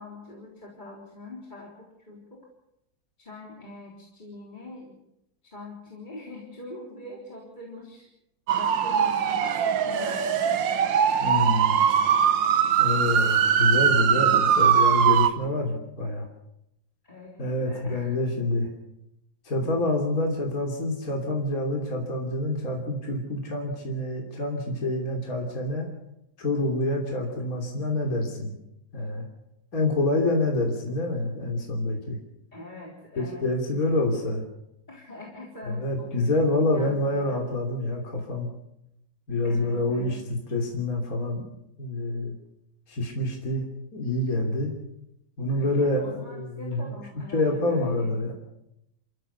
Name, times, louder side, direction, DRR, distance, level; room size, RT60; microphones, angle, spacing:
voice 1, 0.0-2.5 3.2-5.0 5.4-8.1 8.5-10.6 14.2-14.4 17.0-18.3 32.5-33.5 34.9-36.3 36.7-37.4 39.4-40.2 45.5-48.1, left 2 dB, 20° left, -2 dB, 3.8 m, -43 dB
sound 1, 8.5-15.3, right 8 dB, 70° right, 1.8 m, -21 dB
voice 2, 11.2-11.8 12.8-16.3 17.4-18.7 19.5-25.9 26.4-28.6 28.9-29.2 29.7-32.2 33.2-34.4 35.6-38.5 39.3-41.4 41.8-42.3 42.9-43.6 43.9-44.7 45.4-46.8 47.3-48.3, left 2 dB, 45° left, 1 dB, 3.5 m, -27 dB
28.0 x 15.0 x 6.9 m, 0.84 s
omnidirectional pair, 2.1 m